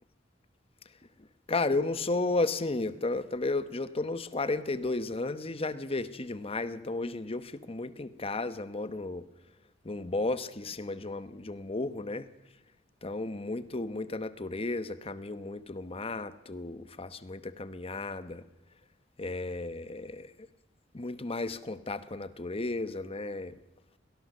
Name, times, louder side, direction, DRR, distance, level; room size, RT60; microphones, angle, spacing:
voice 1, 1.5-9.2 9.8-12.3 13.0-18.4 19.2-20.3 20.9-23.6, left 2 dB, 30° left, 13 dB, 0.9 m, -33 dB
23.0 x 18.0 x 6.6 m, 0.98 s
head